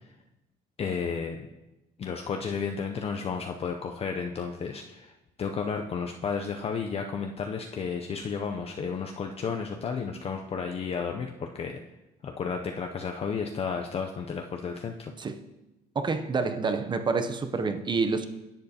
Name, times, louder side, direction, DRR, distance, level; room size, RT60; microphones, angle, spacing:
voice 1, 0.8-1.5 2.0-5.1 5.4-11.8 12.2-15.1, left 6 dB, 35° left, 3 dB, 0.5 m, -32 dB
voice 2, 15.9-18.3, right 4 dB, 25° right, 9 dB, 0.6 m, -28 dB
10.5 x 7.5 x 2.8 m, 0.98 s
cardioid pair, 110°, 17 cm